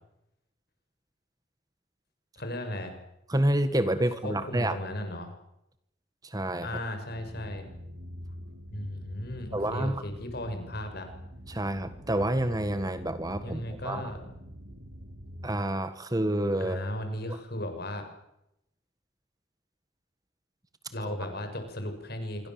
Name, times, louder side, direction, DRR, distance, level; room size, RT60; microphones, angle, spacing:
voice 1, 2.4-3.0 4.2-5.3 6.6-7.6 8.7-11.1 13.4-14.2 16.6-18.0 20.9-22.5, left 1 dB, 55° left, 6 dB, 6.5 m, -36 dB
voice 2, 3.3-4.8 6.2-6.7 9.5-10.0 11.5-14.0 15.4-16.9 21.0-21.2, right 1 dB, 20° right, 11 dB, 1.5 m, -28 dB
sound 1, 7.1-15.5, equal, 90° right, 6.8 m, -45 dB
26.5 x 24.0 x 7.5 m, 0.83 s
head